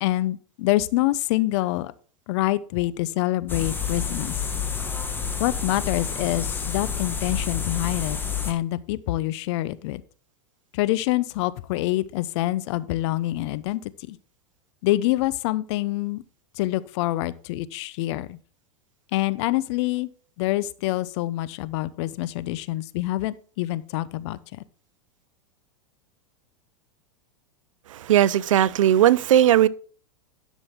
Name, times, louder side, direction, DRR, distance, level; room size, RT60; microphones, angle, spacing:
voice 1, 0.0-1.9 2.3-4.3 5.4-8.2 8.4-10.0 10.7-13.8 14.1-14.2 14.8-16.2 16.6-18.4 19.1-20.1 20.4-24.6, left 16 dB, 60° left, 0.7 m, -26 dB
sound 1, 3.5-8.5, left 6 dB, 10° left, 1.6 m, -29 dB
voice 2, 27.9-29.7, right 11 dB, 80° right, 0.6 m, -18 dB
11.5 x 6.3 x 3.6 m
hypercardioid pair, 115°, 16 cm